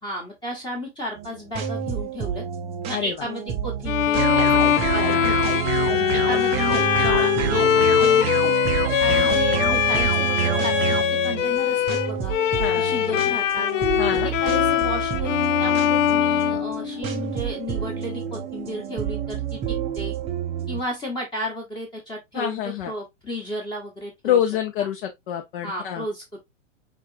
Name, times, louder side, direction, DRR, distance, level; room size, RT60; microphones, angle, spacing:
voice 1, 0.0-2.4 2.9-5.7 6.1-8.6 9.0-10.8 11.1-12.4 12.7-13.7 14.1-20.1 20.7-24.4 24.8-24.9 25.6-26.4, left 1 dB, 10° left, 1.2 m, -33 dB
sound 1, 1.2-20.8, right 8 dB, 15° right, 0.6 m, -30 dB
Bowed string instrument, 3.9-17.3, left 11 dB, 75° left, 0.6 m, -22 dB
sound 2, 4.2-11.0, right 11 dB, 50° right, 0.7 m, -26 dB
voice 2, 5.0-5.4 9.1-9.4 12.6-12.8 14.0-14.3 22.3-22.9 24.2-26.1, left 10 dB, 45° left, 0.9 m, -26 dB
4.6 x 3.7 x 2.6 m
hypercardioid pair, 145°, 38 cm